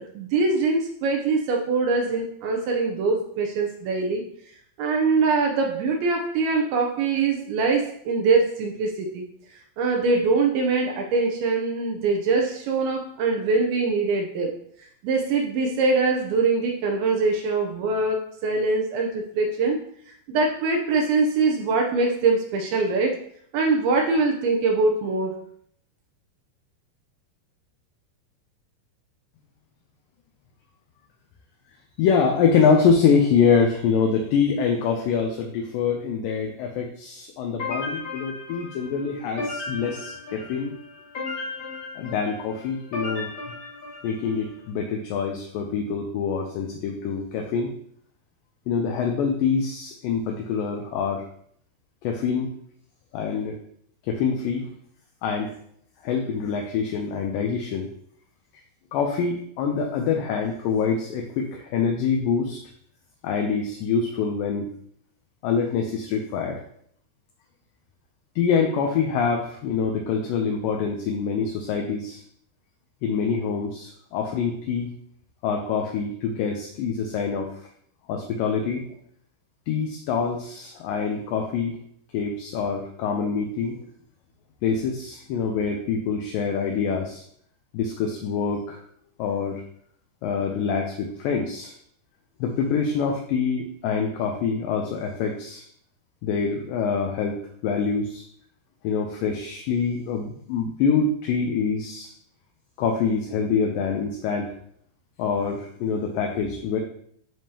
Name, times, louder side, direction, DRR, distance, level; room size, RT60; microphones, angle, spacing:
voice 1, 0.0-4.2 4.8-9.3 9.8-14.5 15.0-19.8 20.1-23.2 23.5-25.4, right 3 dB, 80° right, 1 dB, 2.5 m, -23 dB
voice 2, 32.0-40.7 42.0-43.3 44.0-47.7 48.7-51.2 52.0-52.5 53.1-53.6 54.1-54.7 55.2-55.5 56.0-57.9 58.9-62.6 63.2-64.7 65.4-66.6 68.4-72.2 73.0-74.9 75.4-77.5 78.1-78.8 79.7-81.8 82.1-83.8 84.6-87.2 87.7-88.8 89.2-89.6 90.2-91.7 92.4-95.6 96.2-97.4 97.6-98.2 98.8-102.1 102.8-104.5 105.2-106.8, left 6 dB, 80° left, 2 dB, 2.0 m, -25 dB
sound 1, 37.6-44.5, left 3 dB, 45° left, 1.7 m, -35 dB
10.5 x 3.6 x 2.8 m, 0.64 s
omnidirectional pair, 4.5 m